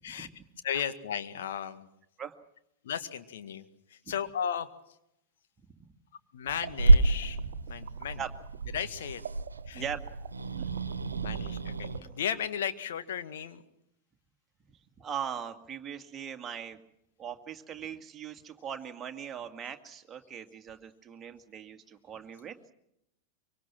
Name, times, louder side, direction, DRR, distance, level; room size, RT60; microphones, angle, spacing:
voice 1, 0.6-1.9 2.8-3.7 3.9-4.7 6.3-7.4 7.7-8.2 8.7-9.2 9.7-9.8 11.2-13.6, left 8 dB, 60° left, 9 dB, 1.8 m, -35 dB
sound 1, 6.5-12.6, right 8 dB, 55° right, 1.3 m, -43 dB
Growling / Hiss, 6.8-12.0, right 2 dB, 75° right, 1.3 m, -28 dB
voice 2, 15.0-16.8 17.2-22.7, right 8 dB, 25° right, 6 dB, 2.1 m, -40 dB
24.5 x 24.5 x 6.1 m, 0.79 s
figure-of-eight pair, 90°, 0 cm